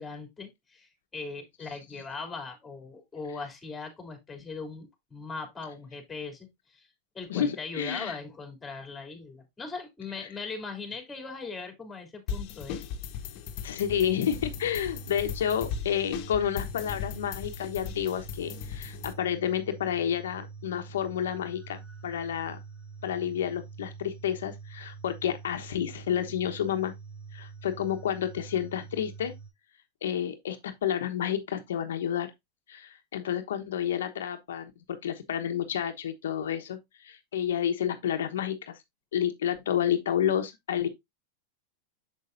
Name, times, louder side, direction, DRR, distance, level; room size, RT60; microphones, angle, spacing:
voice 1, 0.0-6.9 7.1-12.8, left 4 dB, 15° left, 3.2 m, -40 dB
voice 2, 7.3-8.2 10.2-10.3 13.6-22.6 23.0-26.9 27.3-29.3 30.0-32.3 32.7-38.8 39.1-40.9, left 9 dB, 80° left, 1.1 m, -30 dB
sound 1, 12.3-19.1, left 7 dB, 55° left, 1.3 m, -38 dB
sound 2, 13.8-29.5, right 5 dB, 50° right, 5.5 m, -45 dB
7.2 x 6.7 x 2.6 m
hypercardioid pair, 110°, 0 cm